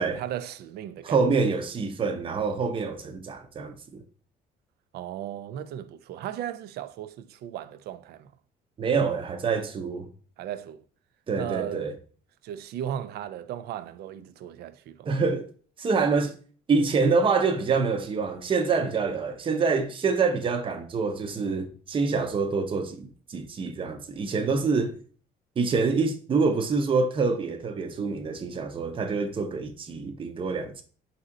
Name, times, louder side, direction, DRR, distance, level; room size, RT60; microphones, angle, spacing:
voice 1, 0.0-1.2 4.9-8.3 10.4-10.8 11.3-11.9 12.4-15.1, right 11 dB, 70° right, 0.4 m, -36 dB
voice 2, 1.0-3.8 8.8-10.1 11.3-11.9 15.1-15.5 15.8-16.3 16.7-24.9 25.6-30.8, right 4 dB, 30° right, 0.6 m, -26 dB
4.2 x 2.7 x 3.8 m
cardioid pair, 110°, 17 cm